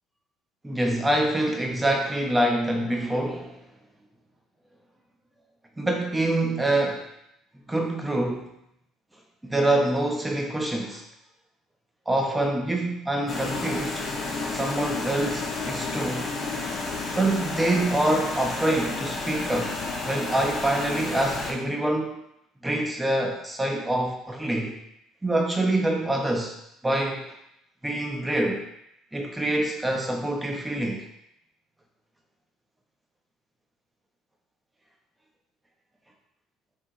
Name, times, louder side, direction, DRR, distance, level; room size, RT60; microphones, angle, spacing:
voice 1, 0.6-3.6 5.8-7.1 7.7-8.5 9.4-11.0 12.1-14.0 14.5-16.3 17.2-22.2 22.6-24.8 25.2-26.6 26.8-27.3 27.8-28.7 29.1-31.1, right 1 dB, 15° right, 1 dB, 0.6 m, -25 dB
sound 1, 13.3-21.5, left 3 dB, 45° left, 0.5 m, -31 dB
2.8 x 2.7 x 2.4 m, 0.79 s
hypercardioid pair, 65°, 0 cm